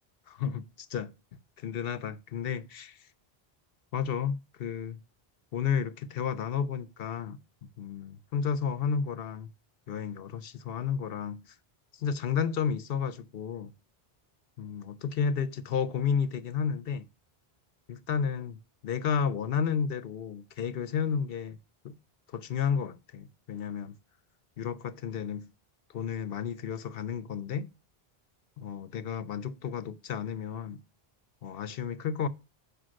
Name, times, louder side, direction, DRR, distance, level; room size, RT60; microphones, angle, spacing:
voice 1, 0.3-1.1 1.6-3.0 3.9-5.0 5.5-7.4 7.8-9.5 9.9-11.5 12.0-13.7 14.6-17.1 17.9-18.6 18.8-21.6 21.8-21.9 22.3-24.0 24.6-25.5 25.9-27.7 28.6-30.8 31.4-32.3, left 7 dB, 70° left, 0.9 m, -32 dB
6.3 x 5.2 x 6.3 m
omnidirectional pair, 1.0 m